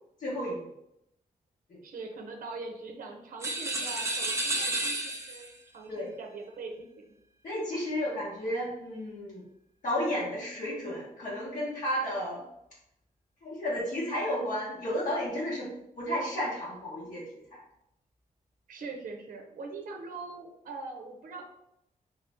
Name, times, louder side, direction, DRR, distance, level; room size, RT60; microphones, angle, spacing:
voice 1, 0.2-0.6 5.9-6.1 7.4-9.4 9.8-12.4 13.4-15.7 16.0-17.2, equal, 60° left, -7 dB, 1.2 m, -32 dB
voice 2, 1.8-7.1 18.7-21.4, right 3 dB, 60° right, 2 dB, 0.5 m, -42 dB
sound 1, 3.4-5.6, right 2 dB, 20° right, 0.6 m, -31 dB
3.7 x 2.6 x 3.5 m, 0.80 s
wide cardioid pair, 155°, 15 cm